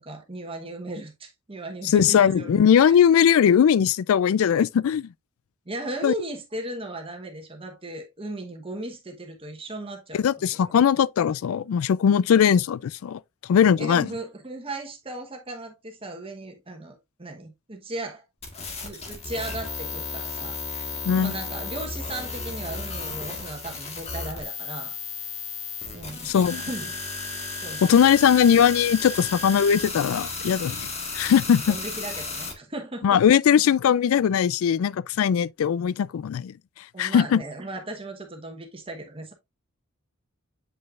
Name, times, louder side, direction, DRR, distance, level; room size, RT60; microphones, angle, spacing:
voice 1, 0.0-2.6 2.8-3.0 5.7-10.7 13.8-18.2 18.8-24.9 25.9-27.0 27.6-27.9 31.7-33.1 36.9-39.3, right 2 dB, 25° right, 1.2 m, -36 dB
voice 2, 1.8-5.1 6.0-6.1 10.1-13.2 13.5-14.1 21.0-21.3 26.2-26.7 27.8-30.9 31.1-31.8 33.0-36.5 37.0-37.4, left 8 dB, 75° left, 0.3 m, -20 dB
sound 1, 18.4-32.5, left 4 dB, 30° left, 1.5 m, -34 dB
7.8 x 5.4 x 2.4 m
head